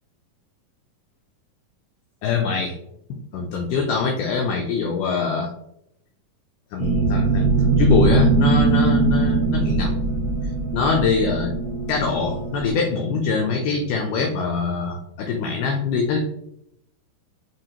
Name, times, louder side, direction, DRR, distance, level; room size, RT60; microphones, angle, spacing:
voice 1, 2.2-2.8 3.1-5.5 6.7-9.9 10.7-11.6 11.9-16.2, left 4 dB, 90° left, 2 dB, 1.8 m, -23 dB
sound 1, 6.8-12.7, right 4 dB, 85° right, 1.2 m, -21 dB
5.6 x 2.9 x 2.8 m, 0.78 s
omnidirectional pair, 4.3 m